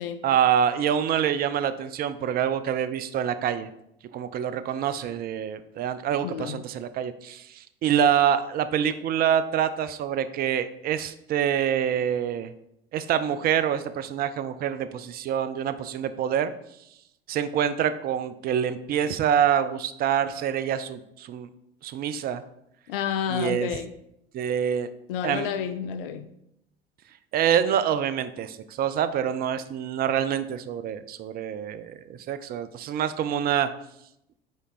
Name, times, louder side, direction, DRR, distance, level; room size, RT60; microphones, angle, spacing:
voice 1, 0.2-3.7 4.1-12.5 12.9-16.5 17.3-21.5 21.8-22.4 23.3-23.7 24.3-24.9 25.2-25.5 27.3-33.7, right 9 dB, 30° right, 12 dB, 0.4 m, -26 dB
voice 2, 6.2-6.6 22.9-23.9 25.1-26.3, left 8 dB, 65° left, 9 dB, 0.5 m, -30 dB
5.2 x 4.6 x 3.9 m, 0.79 s
figure-of-eight pair, 70°, 30 cm